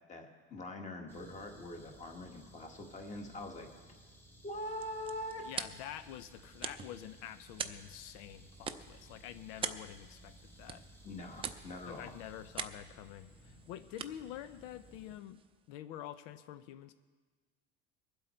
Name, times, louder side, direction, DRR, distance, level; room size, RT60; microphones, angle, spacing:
voice 1, 0.1-3.7 4.4-5.5 11.0-12.1, left 1 dB, 25° left, 3 dB, 1.7 m, -43 dB
sound 1, 1.1-15.2, right 1 dB, 5° left, 1.0 m, -58 dB
sound 2, 4.5-15.7, right 7 dB, 20° right, 0.5 m, -46 dB
voice 2, 5.4-10.8 11.9-15.4 15.7-16.9, left 11 dB, 90° left, 12 dB, 0.7 m, -47 dB
23.0 x 7.9 x 4.5 m, 1.4 s
cardioid pair, 155°, 30 cm